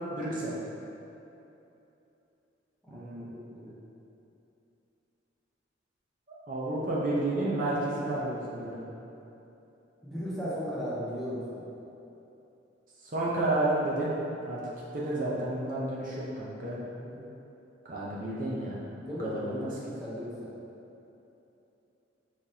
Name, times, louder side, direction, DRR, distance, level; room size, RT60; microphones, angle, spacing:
voice 1, 0.1-0.5 2.9-3.3 6.5-8.8 13.1-14.1 14.4-14.6 14.9-16.8 17.9-18.9 19.2-19.7, right 1 dB, 45° right, -7 dB, 0.7 m, -31 dB
voice 2, 2.8-3.7 10.0-11.7 17.0-17.3 19.0-20.5, equal, ahead, -10 dB, 0.9 m, -37 dB
5.7 x 3.2 x 2.8 m, 2.9 s
head